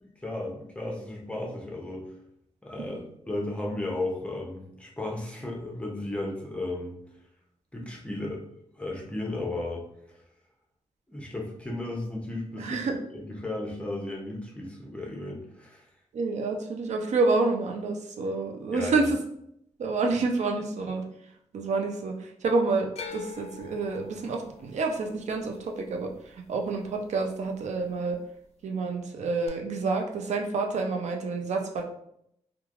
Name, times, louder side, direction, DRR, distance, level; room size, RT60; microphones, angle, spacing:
voice 1, 0.0-2.0 2.6-3.0 3.3-6.9 7.7-8.4 8.8-9.8 11.1-12.8 13.1-15.8 18.7-19.1, left 2 dB, 10° left, -1 dB, 0.6 m, -34 dB
voice 2, 12.6-13.0 16.1-19.2 19.8-21.0 21.5-26.1 26.5-28.2 28.6-31.8, right 3 dB, 70° right, 2 dB, 0.4 m, -28 dB
sound 1, 22.9-27.1 27.4-28.1 29.5-29.6, left 5 dB, 60° left, 0.4 m, -45 dB
3.1 x 2.2 x 2.4 m, 0.73 s
wide cardioid pair, 145°, 12 cm